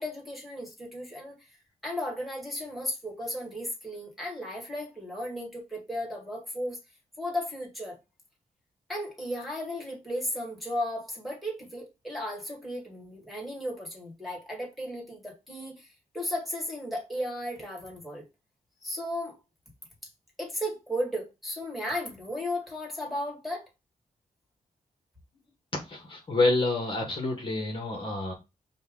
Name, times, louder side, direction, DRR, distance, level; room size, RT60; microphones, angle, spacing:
voice 1, 0.0-1.4 1.8-6.8 7.2-8.0 8.9-15.9 16.1-18.2 18.8-19.4 20.4-23.6, equal, ahead, 1.8 m, -35 dB
voice 2, 25.9-28.3, left 2 dB, 35° left, 1.2 m, -28 dB
5.4 x 2.3 x 3.6 m
wide cardioid pair, 110°, 15 cm